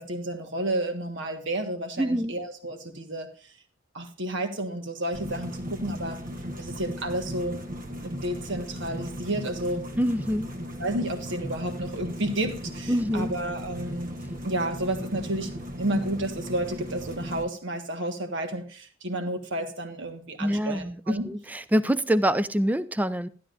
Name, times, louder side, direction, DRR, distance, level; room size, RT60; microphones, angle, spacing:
voice 1, 0.0-3.3 3.9-6.2 6.6-7.6 8.0-9.9 10.8-14.1 14.4-21.3, right 1 dB, 60° right, 6 dB, 1.5 m, -31 dB
voice 2, 2.0-2.4 10.0-10.5 12.9-13.3 20.4-23.3, equal, 10° right, 14 dB, 0.4 m, -25 dB
sound 1, 5.1-17.4, equal, 40° right, 1.2 m, -37 dB
12.5 x 12.0 x 2.5 m, 0.38 s
head